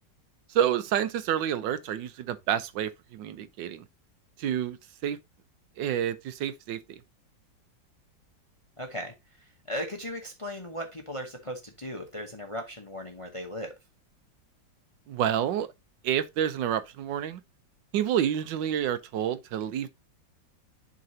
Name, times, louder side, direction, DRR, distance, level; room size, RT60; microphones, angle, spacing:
voice 1, 0.5-3.9 4.4-4.8 5.0-5.2 5.8-7.0 15.1-15.7 16.0-17.4 17.9-19.9, right 10 dB, 85° right, 1.4 m, -28 dB
voice 2, 8.8-9.1 9.4-13.7, equal, 25° left, 0.7 m, -37 dB
11.0 x 3.9 x 2.7 m
omnidirectional pair, 2.0 m